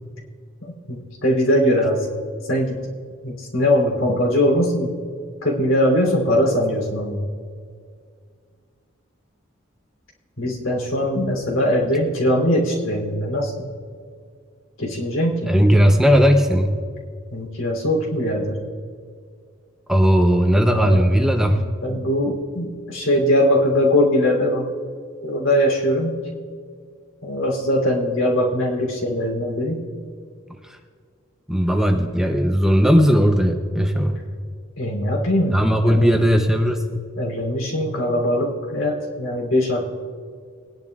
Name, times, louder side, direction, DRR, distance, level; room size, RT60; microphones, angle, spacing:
voice 1, 0.6-1.0 1.2-2.0 2.5-2.8 3.2-4.9 5.4-7.2 10.4-13.5 14.8-15.5 17.3-18.6 20.7-21.2 21.8-24.7 25.2-26.1 27.2-29.8 34.8-35.5 35.8-36.1 37.2-39.9, left 1 dB, 75° left, -1 dB, 3.2 m, -21 dB
voice 2, 15.5-16.8 19.9-21.6 30.7-30.8 31.5-34.2 35.5-36.8, equal, 5° right, 4 dB, 0.6 m, -17 dB
20.5 x 10.5 x 2.4 m, 2.1 s
head